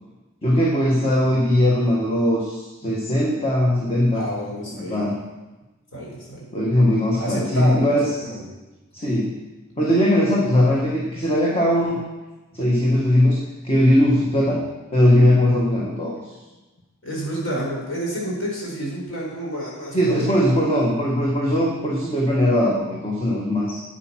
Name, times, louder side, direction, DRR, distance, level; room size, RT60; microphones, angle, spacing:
voice 1, 0.4-4.2 4.9-5.2 6.5-8.0 8.9-9.3 9.8-12.0 12.5-13.4 13.6-16.2 19.9-23.8, left 1 dB, 30° left, -3 dB, 1.5 m, -19 dB
voice 2, 4.1-5.1 5.9-6.5 7.2-8.5 17.0-20.7, equal, 65° left, -4 dB, 4.4 m, -29 dB
8.9 x 8.9 x 6.0 m, 1.1 s
head